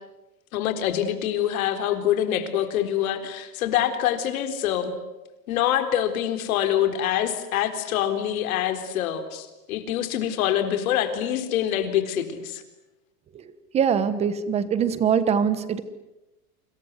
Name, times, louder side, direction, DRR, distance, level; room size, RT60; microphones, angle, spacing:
voice 1, 0.5-5.0 5.5-12.6, left 10 dB, 60° left, 8 dB, 3.9 m, -25 dB
voice 2, 13.3-15.8, right 7 dB, 15° right, 14 dB, 1.1 m, -23 dB
27.5 x 26.0 x 8.1 m, 1.0 s
supercardioid pair, 175°, 47 cm